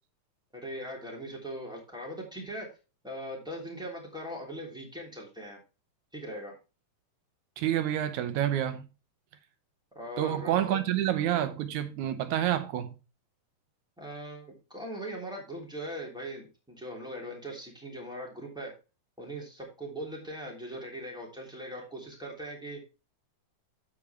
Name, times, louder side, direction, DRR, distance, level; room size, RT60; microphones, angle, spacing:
voice 1, 0.5-2.7 3.0-5.6 6.1-6.6 9.9-10.8 14.0-18.7 19.2-22.8, equal, ahead, 2.6 m, -40 dB
voice 2, 7.6-8.9 10.2-13.0, right 11 dB, 75° right, 2.0 m, -28 dB
13.5 x 4.7 x 3.3 m
omnidirectional pair, 3.7 m